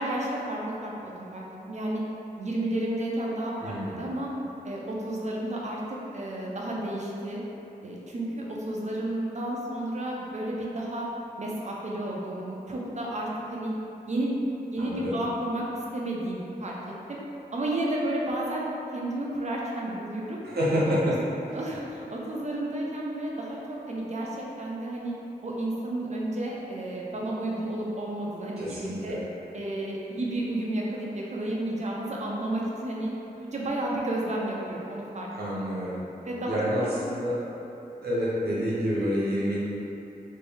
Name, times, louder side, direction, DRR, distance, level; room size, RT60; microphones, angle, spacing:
voice 1, 0.0-2.0 2.4-4.3 4.6-5.8 6.1-7.4 7.8-11.1 11.4-13.7 14.1-14.4 14.7-15.6 15.9-16.8 17.1-17.2 17.5-18.7 18.9-20.4 20.9-21.2 21.5-25.1 25.4-29.2 29.5-33.1 33.4-35.3 36.2-37.1 38.6-38.7, right 1 dB, 45° right, -3 dB, 0.6 m, -32 dB
voice 2, 3.6-4.0 14.8-15.2 20.4-21.1 21.5-21.6 28.6-29.2 35.3-36.0 36.5-37.4 38.0-39.6, equal, 90° right, -8 dB, 0.8 m, -28 dB
3.2 x 2.6 x 3.4 m, 3.0 s
cardioid pair, 50°, 16 cm